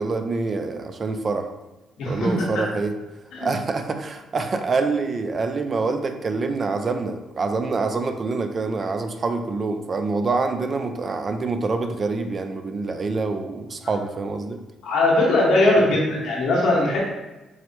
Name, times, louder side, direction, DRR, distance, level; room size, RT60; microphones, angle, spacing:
voice 1, 0.0-1.5 2.1-2.9 3.4-14.6, right 3 dB, 40° right, 7 dB, 0.4 m, -26 dB
voice 2, 2.0-2.5 3.3-3.5 14.8-17.0, left 2 dB, 85° left, -3 dB, 1.3 m, -20 dB
4.6 x 2.1 x 4.3 m, 1.0 s
cardioid pair, 90°, 0 cm